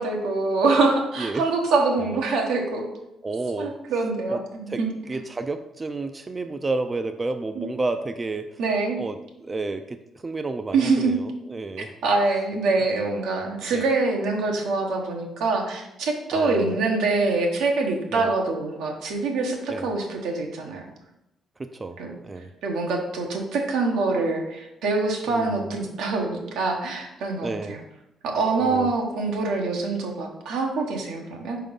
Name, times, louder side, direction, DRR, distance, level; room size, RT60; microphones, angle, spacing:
voice 1, 0.0-2.9 3.6-4.9 7.5-7.6 8.6-9.0 10.7-11.1 12.0-20.9 22.0-22.1 22.6-27.8 28.2-31.6, right 3 dB, 85° right, 1 dB, 1.1 m, -25 dB
voice 2, 3.2-3.7 4.3-4.4 4.7-4.8 5.1-8.6 9.0-10.0 10.2-11.9 13.7-13.8 16.3-16.7 18.1-18.3 19.7-19.9 21.6-21.9 22.2-22.5 25.3-25.6 27.4-27.8 28.6-28.9, right 3 dB, 25° right, 8 dB, 0.4 m, -30 dB
4.8 x 3.7 x 5.4 m, 0.89 s
cardioid pair, 90°, 0 cm